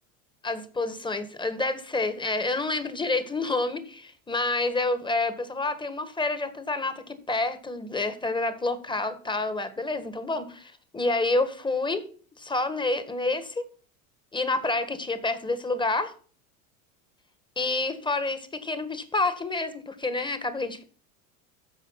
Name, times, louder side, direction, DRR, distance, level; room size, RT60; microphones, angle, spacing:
voice 1, 0.4-12.0 12.4-13.6 14.3-16.1 17.5-20.8, left 2 dB, 10° left, 11 dB, 1.6 m, -28 dB
13.5 x 5.1 x 5.8 m, 0.42 s
hypercardioid pair, 100°, 42 cm